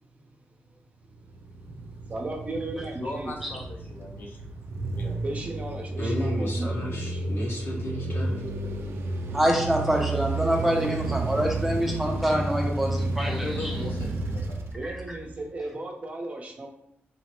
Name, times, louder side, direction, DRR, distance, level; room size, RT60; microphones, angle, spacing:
voice 1, 0.5-1.4 1.7-3.3 5.2-6.7 7.1-7.2 14.7-16.7, right 2 dB, 35° right, 1 dB, 0.7 m, -36 dB
sound 1, 1.2-15.5, right 2 dB, 80° right, 0.4 m, -31 dB
voice 2, 3.0-4.5 4.9-5.2 13.3-14.7, left 2 dB, 50° left, 0 dB, 0.7 m, -38 dB
voice 3, 6.0-8.4, equal, 70° left, -5 dB, 1.3 m, -33 dB
voice 4, 9.3-13.7, right 1 dB, 5° right, 0 dB, 0.7 m, -26 dB
4.0 x 2.1 x 4.3 m, 0.80 s
wide cardioid pair, 135°, 4 cm